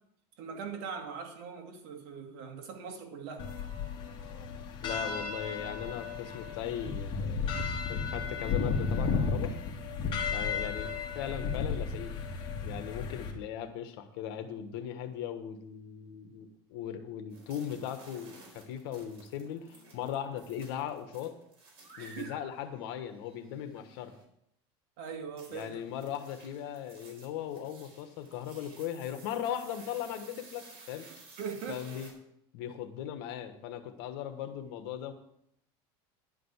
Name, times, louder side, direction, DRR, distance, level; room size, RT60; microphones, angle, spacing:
voice 1, 0.4-3.5 22.0-22.3 25.0-25.8 31.0-31.8, right 6 dB, 70° right, 3 dB, 2.1 m, -41 dB
sound 1, 3.4-13.3, left 5 dB, 35° left, 2.3 m, -34 dB
voice 2, 4.8-7.5 7.9-9.5 10.3-12.2 12.6-21.4 22.0-24.2 25.5-31.1 31.7-32.1 32.5-35.1, left 9 dB, 75° left, 8 dB, 1.4 m, -38 dB
sound 2, 17.3-24.2 25.4-32.1, right 3 dB, 50° right, 4.3 m, -55 dB
11.0 x 5.2 x 8.1 m, 0.75 s
supercardioid pair, 150°, 13 cm